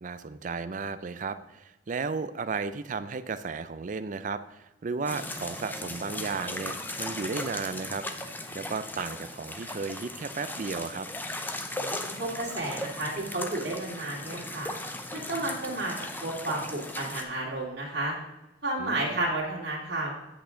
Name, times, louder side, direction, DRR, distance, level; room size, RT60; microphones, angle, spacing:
voice 1, 0.0-8.2 8.5-11.1 18.8-19.2, right 4 dB, 45° right, 13 dB, 0.4 m, -34 dB
sound 1, 5.1-17.2, left 1 dB, 10° left, 0.6 m, -37 dB
voice 2, 11.7-14.7 15.1-15.9 16.2-18.1 18.6-20.1, right 2 dB, 60° right, -4 dB, 2.4 m, -32 dB
8.4 x 8.2 x 3.8 m, 0.94 s
head